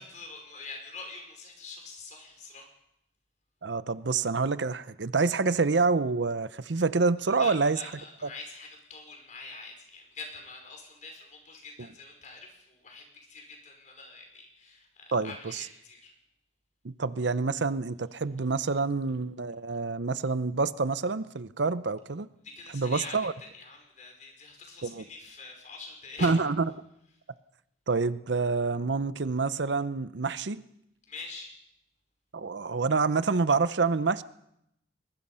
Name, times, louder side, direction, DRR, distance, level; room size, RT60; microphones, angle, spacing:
voice 1, 0.0-2.7 7.3-16.1 22.4-26.3 31.1-31.5, left 3 dB, 40° left, 3 dB, 5.3 m, -45 dB
voice 2, 3.6-7.8 15.1-15.6 16.8-22.3 22.7-23.3 24.8-25.0 26.2-26.7 27.9-30.6 32.3-34.2, right 4 dB, 75° right, 15 dB, 0.7 m, -27 dB
22.0 x 21.0 x 5.7 m, 0.79 s
head